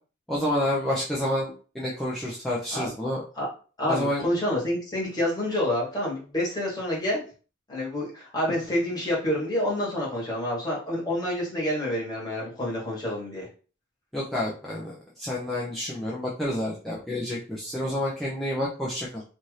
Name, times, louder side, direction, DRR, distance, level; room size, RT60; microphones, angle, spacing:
voice 1, 0.3-3.2 3.9-4.2 14.1-19.2, left 1 dB, ahead, -7 dB, 0.5 m, -29 dB
voice 2, 3.8-7.2 7.7-13.5, left 1 dB, 20° left, -5 dB, 1.2 m, -28 dB
2.7 x 2.5 x 3.1 m, 0.37 s
head